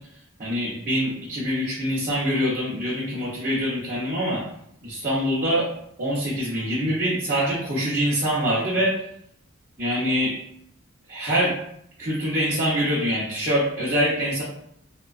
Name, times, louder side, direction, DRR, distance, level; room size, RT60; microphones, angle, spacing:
voice 1, 0.4-4.4 4.8-5.7 6.0-9.0 9.8-10.3 11.1-11.5 12.0-14.4, equal, 40° right, -9 dB, 0.6 m, -24 dB
2.7 x 2.2 x 2.4 m, 0.71 s
head